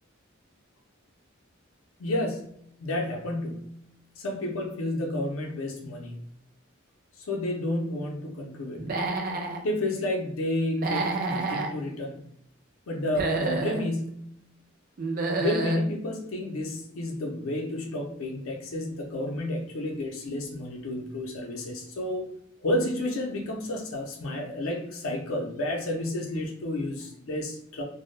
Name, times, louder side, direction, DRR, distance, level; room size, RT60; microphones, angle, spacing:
voice 1, 2.0-3.8 4.2-6.2 7.2-8.9 9.6-12.2 12.9-14.3 15.4-22.3 22.6-27.8, left 1 dB, 85° left, 0 dB, 0.5 m, -31 dB
Human voice / Animal, 8.8-9.6 10.7-11.7 13.0-13.8 15.0-15.8, right 3 dB, 45° right, 0.3 m, -29 dB
2.1 x 2.0 x 3.0 m, 0.71 s
head